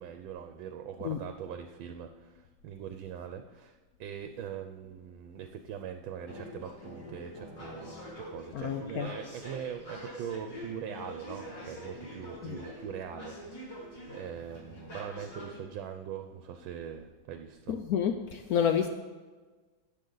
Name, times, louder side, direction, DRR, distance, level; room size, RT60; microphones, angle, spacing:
voice 1, 0.0-17.8, right 8 dB, 75° right, 7 dB, 1.4 m, -42 dB
sound 1, 6.3-15.6, equal, 50° left, 3.4 m, -45 dB
voice 2, 8.5-9.1 12.4-12.6 17.7-18.9, left 8 dB, 90° left, 6 dB, 0.8 m, -29 dB
14.0 x 9.1 x 3.9 m, 1.3 s
omnidirectional pair, 2.3 m